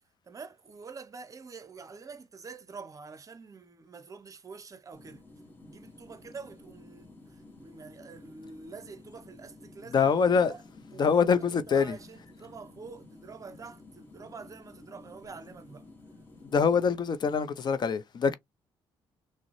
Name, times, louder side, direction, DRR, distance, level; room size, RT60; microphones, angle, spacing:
voice 1, 0.3-5.2 5.6-10.6 10.9-15.8, right 5 dB, 35° right, 0.6 m, -47 dB
sound 1, 4.9-17.0, left 2 dB, 20° left, 1.1 m, -52 dB
voice 2, 9.9-10.5 11.0-12.0 16.5-18.3, left 6 dB, 50° left, 0.6 m, -24 dB
3.7 x 2.1 x 3.0 m
cardioid pair, 75°, 10 cm